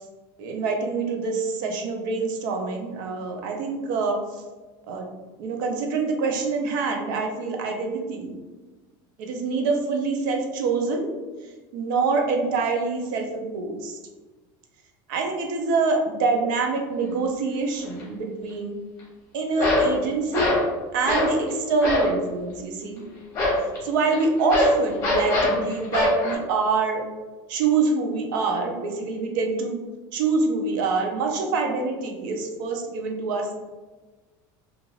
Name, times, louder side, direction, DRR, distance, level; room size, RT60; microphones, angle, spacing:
voice 1, 0.4-4.2 4.9-5.1 5.4-8.3 9.2-11.1 11.7-14.0 15.1-18.8 19.3-20.5 20.9-23.0 23.8-27.0 27.5-29.8 30.1-33.6, right 4 dB, 80° right, 2 dB, 0.5 m, -25 dB
sound 1, 17.8-18.0 19.6-20.0 20.3-20.7 21.0-21.4 21.8-22.2 23.3-26.3, left 1 dB, 30° left, 0.8 m, -22 dB
3.1 x 2.4 x 2.3 m, 1.2 s
cardioid pair, 170°, 10 cm